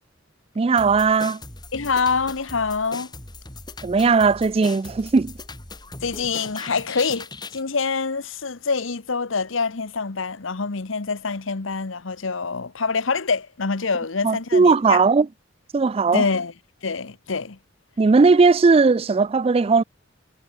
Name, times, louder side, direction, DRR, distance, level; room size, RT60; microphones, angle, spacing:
voice 1, 0.6-1.4 3.8-5.3 14.2-15.3 15.7-16.3 18.0-19.8, right 4 dB, 30° right, 0.3 m, -17 dB
sound 1, 0.8-7.6, left 3 dB, 20° left, 3.4 m, -39 dB
voice 2, 1.7-3.1 6.0-15.0 16.1-16.5 16.8-17.6, left 4 dB, 75° left, 1.1 m, -25 dB
head